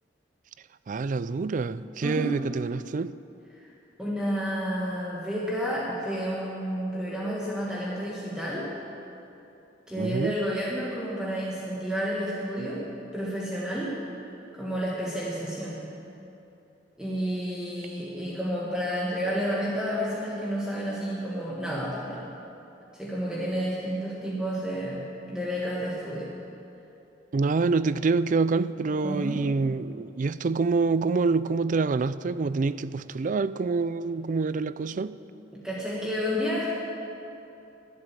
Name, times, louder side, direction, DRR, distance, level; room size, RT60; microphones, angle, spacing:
voice 1, 0.9-3.1 10.0-10.4 27.3-35.2, right 4 dB, 45° right, 0.4 m, -26 dB
voice 2, 2.0-2.4 3.5-3.7 4.0-8.7 9.9-12.8 13.1-14.0 14.5-15.8 17.0-22.3 22.9-26.3 29.0-29.4 35.5-36.7, equal, 5° right, 1.7 m, -30 dB
12.0 x 11.0 x 9.7 m
head